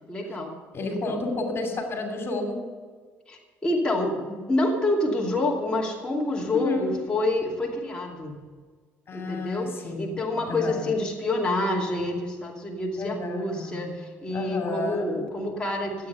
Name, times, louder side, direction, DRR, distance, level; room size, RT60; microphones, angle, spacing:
voice 1, 0.1-0.5 1.1-1.2 3.3-8.4 9.1-16.1, left 2 dB, 15° left, -2 dB, 2.6 m, -27 dB
voice 2, 0.7-2.6 6.5-6.9 9.1-10.1 10.4-11.0 13.0-14.0 14.3-15.2, left 2 dB, 45° left, 4 dB, 2.9 m, -31 dB
14.0 x 8.8 x 6.8 m, 1.5 s
supercardioid pair, 75°, 6 cm